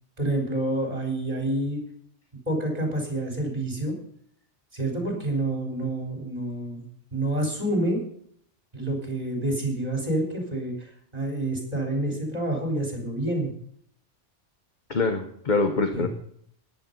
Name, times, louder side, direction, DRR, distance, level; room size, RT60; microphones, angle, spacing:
voice 1, 0.2-1.8 2.5-3.9 4.7-6.9 7.1-8.0 8.7-13.5 15.9-16.1, right 1 dB, 30° right, 1 dB, 4.3 m, -28 dB
voice 2, 14.9-16.1, left 3 dB, 40° left, 7 dB, 1.2 m, -24 dB
13.5 x 10.5 x 5.4 m, 0.66 s
omnidirectional pair, 1.2 m